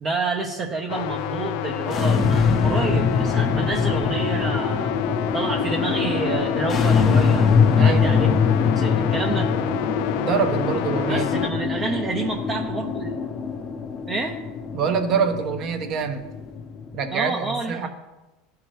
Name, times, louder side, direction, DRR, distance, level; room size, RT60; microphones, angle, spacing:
voice 1, 0.0-4.9 5.3-8.3 8.7-9.5 11.1-13.1 14.1-14.4 17.1-17.9, right 3 dB, 30° right, 1 dB, 0.8 m, -29 dB
sound 1, 0.9-11.5, left 11 dB, 70° left, 0.4 m, -29 dB
sound 2, 1.8-17.1, left 5 dB, 35° left, 0.8 m, -23 dB
voice 2, 7.7-8.4 10.2-11.4 14.7-16.3 16.9-17.9, right 6 dB, 45° right, 6 dB, 1.1 m, -25 dB
13.5 x 4.8 x 3.2 m, 1.1 s
supercardioid pair, 115°, 0 cm